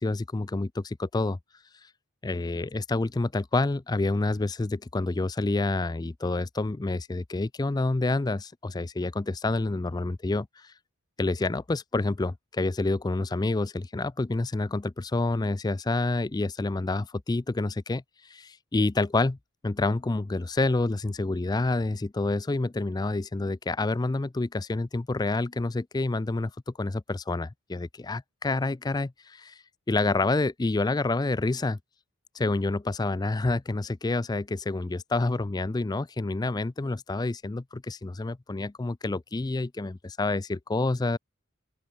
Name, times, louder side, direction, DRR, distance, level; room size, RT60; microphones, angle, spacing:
voice 1, 0.0-1.4 2.2-10.7 11.2-18.0 18.3-19.4 19.6-29.6 29.9-31.8 32.3-41.2, left 2 dB, 20° left, 0.4 m, -28 dB
open air
head